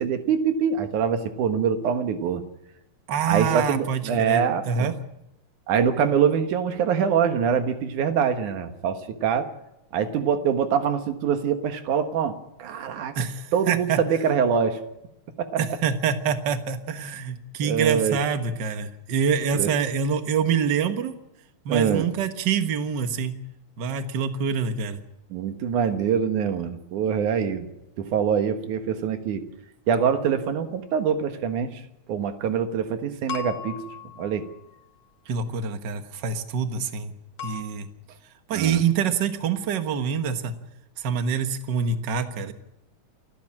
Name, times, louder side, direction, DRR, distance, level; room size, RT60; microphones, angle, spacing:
voice 1, 0.0-2.4 3.2-4.9 5.7-9.5 9.9-13.1 13.5-14.8 15.4-15.6 17.6-18.2 19.5-19.7 21.7-22.1 25.3-27.7 28.0-29.4 29.9-31.8 32.1-33.8 34.2-34.4 38.5-38.8, right 7 dB, 85° right, 8 dB, 3.0 m, -24 dB
voice 2, 3.1-4.9 13.1-14.0 15.6-21.1 21.6-23.3 23.8-25.0 35.3-37.1 37.4-37.9 38.5-40.5 41.0-42.5, right 6 dB, 50° right, 9 dB, 1.5 m, -26 dB
sound 1, 33.3-34.8 37.4-37.6, left 6 dB, 60° left, 2.9 m, -37 dB
28.5 x 10.5 x 8.8 m, 0.89 s
omnidirectional pair, 3.4 m